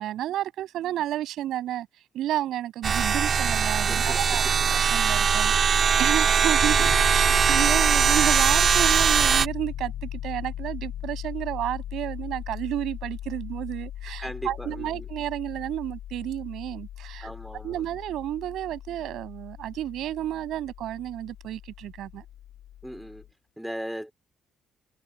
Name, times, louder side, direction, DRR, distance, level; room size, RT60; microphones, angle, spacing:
voice 1, 0.0-1.9 2.1-17.3 17.6-22.2, right 13 dB, 80° right, 7.9 m, -31 dB
sound 1, 2.8-9.5, right 6 dB, 40° right, 3.0 m, -21 dB
voice 2, 3.8-4.6 14.2-15.1 17.2-17.9 22.8-23.3 23.6-24.1, equal, ahead, 3.4 m, -38 dB
Piano, 6.6-23.3, left 11 dB, 80° left, 2.7 m, -38 dB
cardioid pair, 160°, 0 cm